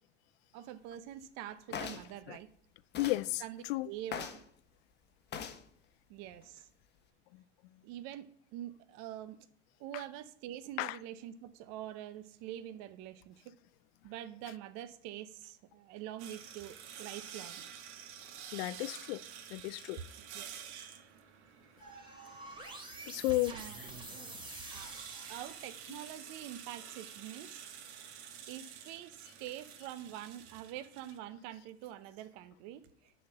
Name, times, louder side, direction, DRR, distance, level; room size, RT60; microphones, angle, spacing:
voice 1, 0.5-2.5 3.4-4.4 6.1-6.7 7.8-9.4 9.8-13.5 14.0-17.6 20.3-20.8 23.5-23.8 24.7-24.9 25.3-27.7 28.5-33.1, right 12 dB, 50° right, 0.7 m, -45 dB
sound 1, 1.7-2.1 2.9-3.2 4.1-4.4 5.3-5.6 6.4-6.6, left 7 dB, 30° left, 1.2 m, -40 dB
voice 2, 3.0-3.9 7.3-7.4 9.9-10.0 10.8-11.0 18.5-19.2 19.5-20.0 23.1-23.9 25.9-26.1, left 19 dB, 60° left, 0.5 m, -34 dB
sound 2, 16.2-31.2, right 8 dB, 65° right, 1.6 m, -50 dB
sound 3, 21.8-26.1, right 2 dB, 15° right, 3.3 m, -47 dB
10.0 x 4.4 x 6.7 m
hypercardioid pair, 95°, 36 cm